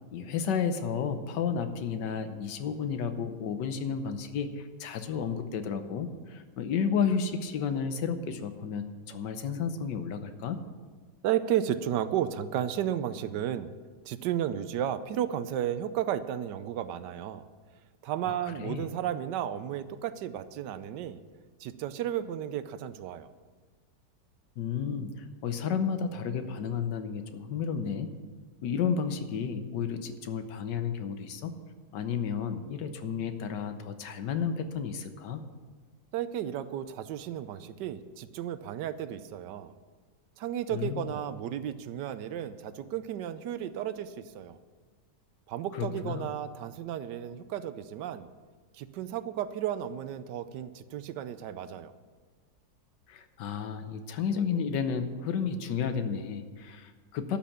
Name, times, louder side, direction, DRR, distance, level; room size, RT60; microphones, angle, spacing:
voice 1, 0.1-10.6 18.2-18.9 24.6-28.1 28.6-31.5 31.9-35.4 40.7-41.1 45.7-46.3 53.1-57.4, left 6 dB, 85° left, 9 dB, 1.5 m, -32 dB
voice 2, 11.2-13.7 14.1-17.4 18.0-21.2 21.6-23.3 36.1-39.7 40.4-44.6 45.5-48.3 48.7-51.9, right 10 dB, 80° right, 13 dB, 1.3 m, -33 dB
12.0 x 5.9 x 8.6 m, 1.4 s
omnidirectional pair, 1.9 m